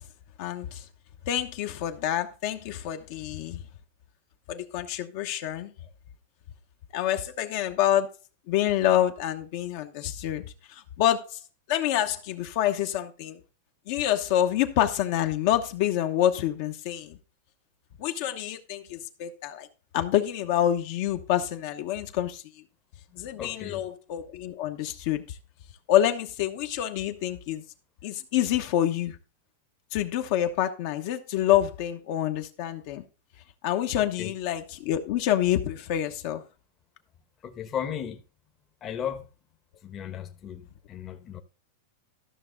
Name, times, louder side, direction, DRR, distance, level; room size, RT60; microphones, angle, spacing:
voice 1, 0.4-0.8 1.3-3.6 4.5-5.7 6.9-8.1 8.5-11.4 11.7-13.4 13.9-17.2 18.0-19.7 19.9-22.4 23.2-25.4 25.9-27.6 28.0-29.2 29.9-33.0 33.6-36.4, left 12 dB, 50° left, 1.0 m, -27 dB
voice 2, 23.1-23.8 34.2-34.3 37.4-38.2 38.8-39.3 39.8-40.6 40.9-41.4, left 9 dB, 25° left, 1.1 m, -35 dB
13.5 x 6.1 x 3.8 m
supercardioid pair, 155°, 0 cm